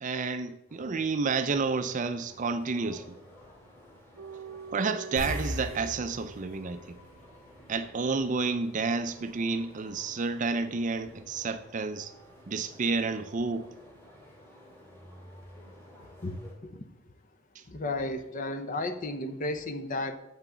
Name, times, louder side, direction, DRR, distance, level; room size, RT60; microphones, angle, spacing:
voice 1, 0.0-3.1 4.7-7.0 7.7-12.1 12.5-13.7, right 4 dB, 35° right, 0.5 m, -30 dB
sound 1, 0.7-16.5, left 1 dB, 10° left, 2.3 m, -53 dB
sound 2, 4.2-10.9 11.2-11.5, right 6 dB, 80° right, 0.7 m, -49 dB
sound 3, 5.2-7.9 8.2-8.4 11.3-11.4 11.7-11.8, equal, 85° left, 3.4 m, -38 dB
voice 2, 16.2-16.9 17.7-20.2, left 2 dB, 40° left, 0.7 m, -33 dB
7.1 x 6.0 x 6.8 m
head